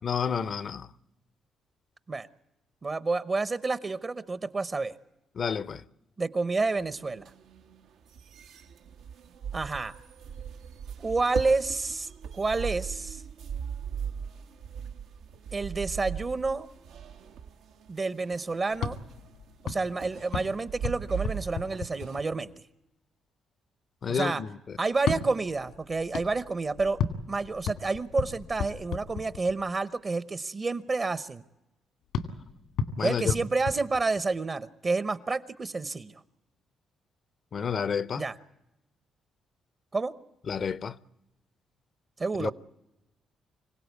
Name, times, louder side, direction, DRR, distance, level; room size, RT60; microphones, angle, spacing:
voice 1, 0.0-0.9 5.4-5.8 24.0-24.5 33.0-33.4 37.5-38.2 40.5-41.0 42.4-42.5, left 6 dB, 50° left, 0.7 m, -30 dB
voice 2, 2.8-5.0 6.2-7.2 9.5-9.9 11.0-13.2 15.5-16.7 17.9-19.0 19.6-22.5 24.1-24.4 24.8-27.0 27.3-31.4 33.0-36.1 38.2-38.4 39.9-40.1 42.2-42.5, right 3 dB, 30° right, 0.9 m, -29 dB
sound 1, 6.6-22.2, right 7 dB, 85° right, 1.4 m, -40 dB
sound 2, 18.7-22.6 24.9-29.8 32.1-34.6, left 6 dB, 85° left, 2.2 m, -35 dB
25.5 x 17.0 x 8.2 m
cardioid pair, 90°, 0 cm